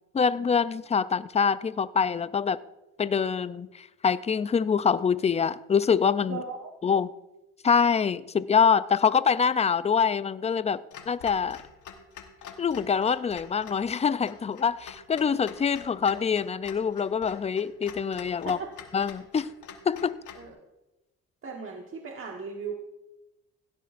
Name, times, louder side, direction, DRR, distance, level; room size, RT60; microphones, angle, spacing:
voice 1, 0.1-2.6 3.0-6.4 6.8-7.1 7.6-11.6 12.6-18.6 18.9-19.5 19.9-20.1, left 6 dB, 20° left, 15 dB, 0.4 m, -25 dB
voice 2, 6.3-6.7 18.4-18.7 20.3-20.5 21.4-22.7, right 5 dB, 45° right, 1 dB, 1.4 m, -37 dB
Clock, 10.9-20.5, left 7 dB, 80° left, 1.3 m, -47 dB
16.5 x 12.5 x 2.5 m, 1.0 s
cardioid pair, 90°, 30 cm